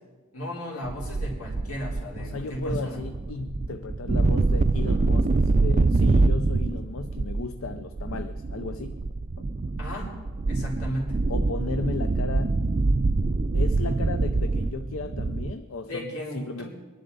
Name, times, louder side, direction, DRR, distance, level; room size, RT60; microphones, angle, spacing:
voice 1, 0.3-3.0 9.8-10.1 10.5-11.2 15.9-16.7, equal, 80° left, -3 dB, 3.6 m, -34 dB
sound 1, 0.9-15.5, right 3 dB, 35° right, 0.4 m, -25 dB
voice 2, 2.2-9.0 11.3-12.6 13.5-16.7, left 3 dB, 65° left, 10 dB, 0.5 m, -35 dB
23.0 x 11.0 x 4.0 m, 1.4 s
head